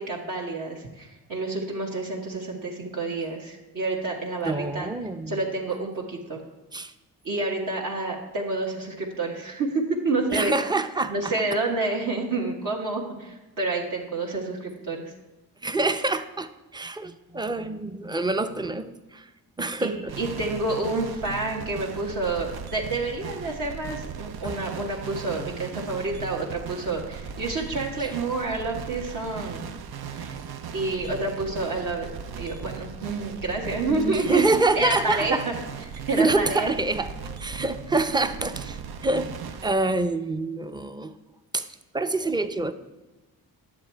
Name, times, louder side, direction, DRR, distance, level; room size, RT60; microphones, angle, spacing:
voice 1, 0.0-4.9 5.3-6.4 7.2-10.5 11.1-15.1 19.8-19.9 20.2-29.6 30.1-30.4 30.7-34.5 34.7-35.6 36.1-36.7, right 3 dB, 55° right, -2 dB, 1.6 m, -29 dB
voice 2, 4.4-5.4 6.7-6.9 10.3-11.3 15.6-19.3 19.6-20.2 24.4-24.5 33.9-35.4 36.1-39.4 39.6-41.1 41.5-41.6 41.9-42.7, right 2 dB, 10° right, 10 dB, 0.6 m, -26 dB
sound 1, 20.1-39.7, right 6 dB, 75° right, 0.8 m, -38 dB
9.7 x 7.4 x 4.5 m, 1.1 s
cardioid pair, 80°, 38 cm